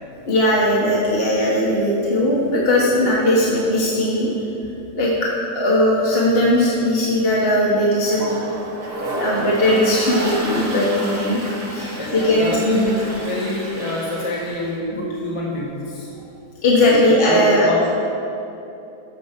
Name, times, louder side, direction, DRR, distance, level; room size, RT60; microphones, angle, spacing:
voice 1, 0.2-4.4 4.9-5.3 5.5-8.3 9.1-11.4 11.7-12.8 16.6-17.7, left 1 dB, 35° left, -6 dB, 1.6 m, -18 dB
Toilet flush, 8.0-14.7, right 1 dB, 70° right, 2.2 m, -31 dB
voice 2, 12.0-16.1 16.8-17.9, left 1 dB, 20° left, -6 dB, 1.4 m, -26 dB
13.5 x 5.2 x 6.7 m, 2.8 s
omnidirectional pair, 1.8 m